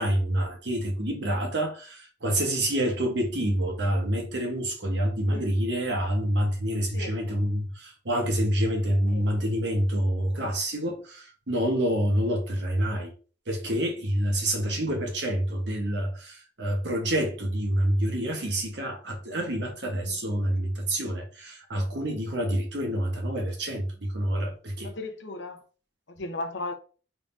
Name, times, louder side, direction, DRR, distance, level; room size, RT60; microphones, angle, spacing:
voice 1, 0.0-13.1 13.5-24.9, right 1 dB, 80° right, 1.2 m, -27 dB
voice 2, 24.8-25.6 26.1-26.7, left 2 dB, 85° left, 0.8 m, -36 dB
3.8 x 3.5 x 2.6 m
head